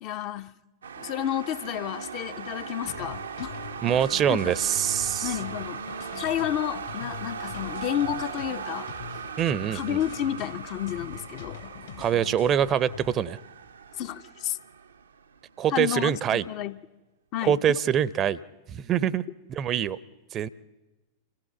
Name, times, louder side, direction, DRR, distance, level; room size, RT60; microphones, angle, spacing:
voice 1, 0.0-0.6 1.0-3.5 4.3-4.5 5.2-5.8 6.2-8.9 9.7-11.6 13.9-14.6 15.7-16.8 17.3-17.8, left 11 dB, 40° left, 0.6 m, -31 dB
sound 1, 0.8-15.7, right 6 dB, 70° right, 0.7 m, -39 dB
sound 2, 2.8-13.2, left 8 dB, 60° left, 1.4 m, -43 dB
voice 2, 3.8-5.4 9.4-10.0 12.0-13.4 15.6-16.5 17.5-18.4 18.7-19.2 19.5-20.0 20.3-20.5, right 9 dB, 30° right, 0.6 m, -24 dB
26.5 x 16.5 x 7.1 m
figure-of-eight pair, 90°, 0 cm